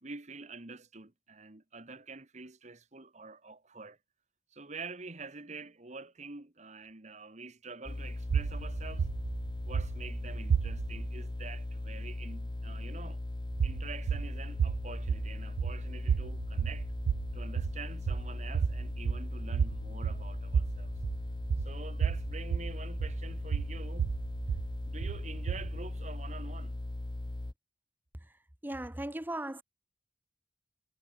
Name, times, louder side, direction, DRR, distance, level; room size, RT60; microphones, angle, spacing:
voice 1, 0.0-4.0 4.5-9.1 9.6-13.2 13.6-16.9 17.3-20.9 21.6-24.2 24.9-26.8, right 3 dB, 40° right, 1.6 m, -46 dB
sound 1, 7.9-27.5, left 1 dB, 25° left, 0.5 m, -39 dB
sound 2, 8.3-11.1 13.5-25.9, right 6 dB, 85° right, 0.3 m, -33 dB
voice 2, 28.6-29.6, right 1 dB, 10° right, 1.0 m, -37 dB
head